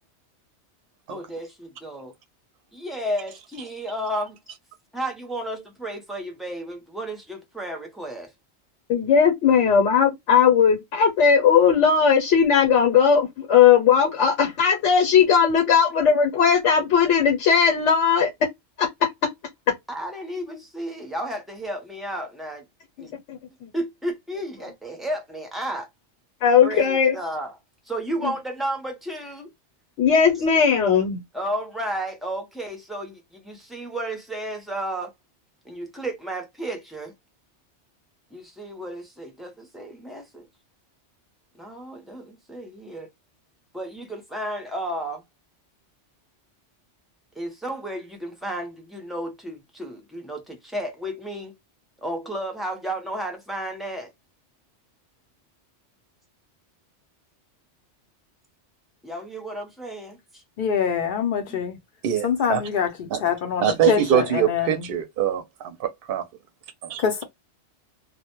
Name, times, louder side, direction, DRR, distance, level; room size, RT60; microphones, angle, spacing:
voice 1, 1.1-2.1 2.7-4.4 4.9-8.3 15.2-15.8 19.9-22.6 23.0-23.1 23.7-25.9 26.6-27.6 27.9-29.5 31.3-35.1 35.6-37.1 38.3-40.5 41.6-43.1 43.7-45.2 47.4-51.5 52.0-54.1 59.0-60.4 61.5-61.6, right 1 dB, ahead, 0.3 m, -33 dB
voice 2, 8.9-18.3 18.8-18.9 23.0-23.4 26.4-27.2 28.2-28.3 30.0-31.2, left 7 dB, 80° left, 1.0 m, -18 dB
voice 3, 60.6-61.8 62.2-64.9 67.0-67.2, left 7 dB, 55° left, 0.6 m, -25 dB
voice 4, 62.0-62.6 63.1-63.2 63.6-66.3 66.8-67.2, right 10 dB, 60° right, 0.6 m, -24 dB
2.1 x 2.1 x 2.8 m
omnidirectional pair, 1.2 m